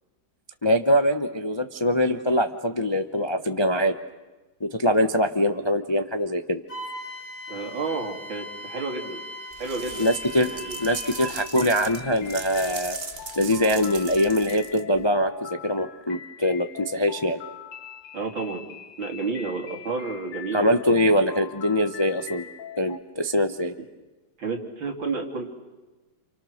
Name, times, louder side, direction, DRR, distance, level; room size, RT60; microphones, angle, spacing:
voice 1, 0.6-4.0 4.6-6.6 10.0-10.5 10.8-13.0 13.4-17.4 20.5-22.5 22.8-23.8, equal, 30° left, 7 dB, 0.5 m, -23 dB
Wind instrument woodwind instrument, 6.7-11.3, left 1 dB, 50° left, 5.1 m, -38 dB
voice 2, 7.5-9.2 9.6-10.1 10.4-10.8 18.1-18.6 19.0-21.2 24.4-25.4, right 4 dB, 80° right, 2 dB, 3.8 m, -31 dB
sound 1, 9.5-15.1, right 5 dB, 40° right, 1.3 m, -39 dB
sound 2, 10.0-23.0, left 9 dB, 70° left, 2.4 m, -42 dB
29.0 x 29.0 x 6.5 m, 1.2 s
omnidirectional pair, 2.1 m